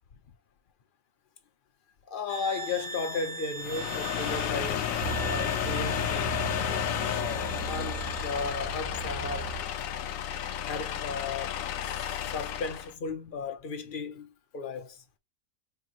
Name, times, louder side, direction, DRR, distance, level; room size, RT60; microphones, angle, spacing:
voice 1, 2.1-4.9 5.2-6.6 7.6-9.6 10.6-15.0, left 4 dB, 50° left, 0.7 m, -35 dB
sound 1, 2.3-8.7, right 1 dB, 55° right, 1.0 m, -41 dB
sound 2, 3.6-12.9, left 10 dB, 70° left, 1.0 m, -32 dB
sound 3, 4.2-9.6, right 9 dB, 70° right, 1.3 m, -39 dB
4.3 x 2.9 x 2.5 m
omnidirectional pair, 1.5 m